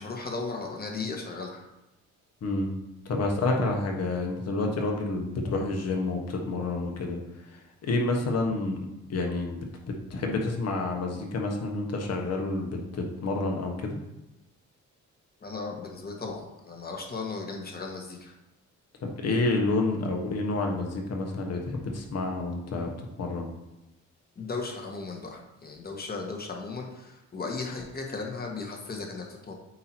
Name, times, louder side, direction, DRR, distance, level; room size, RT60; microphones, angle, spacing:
voice 1, 0.0-1.6 15.4-18.3 24.3-29.5, left 3 dB, 30° left, 1 dB, 1.4 m, -36 dB
voice 2, 3.0-7.2 7.8-9.6 9.9-14.0 19.0-21.6 21.9-22.9 23.2-23.5, left 2 dB, 55° left, 2 dB, 1.3 m, -29 dB
8.4 x 2.9 x 4.4 m, 0.95 s
cardioid pair, 90°, 30 cm